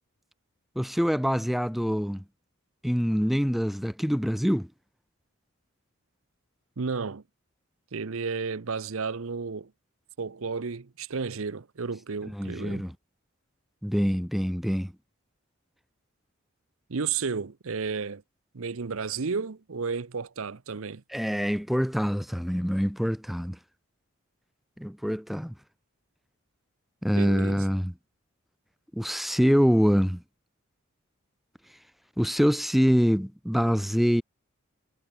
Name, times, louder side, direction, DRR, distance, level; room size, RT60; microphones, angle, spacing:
voice 1, 0.8-2.2 2.8-4.7 12.3-12.9 13.8-14.9 21.1-23.6 24.8-25.5 27.0-27.9 28.9-30.2 32.2-34.2, equal, ahead, 1.0 m, -25 dB
voice 2, 6.8-7.2 7.9-9.7 10.2-12.9 16.9-18.2 18.5-21.0 27.1-27.7, right 5 dB, 70° right, 0.7 m, -32 dB
head